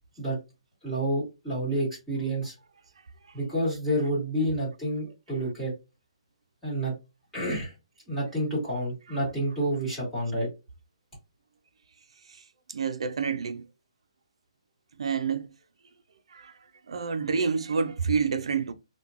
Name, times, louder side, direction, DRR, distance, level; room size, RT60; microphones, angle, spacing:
voice 1, 0.8-2.5 3.3-5.7 6.6-6.9 7.3-7.7 8.1-10.5, right 1 dB, 5° left, 1.5 m, -29 dB
voice 2, 12.7-13.7 15.0-15.5 16.3-16.6 16.9-18.7, right 5 dB, 60° right, 0.4 m, -28 dB
3.1 x 2.2 x 2.4 m
hypercardioid pair, 175°, 3 cm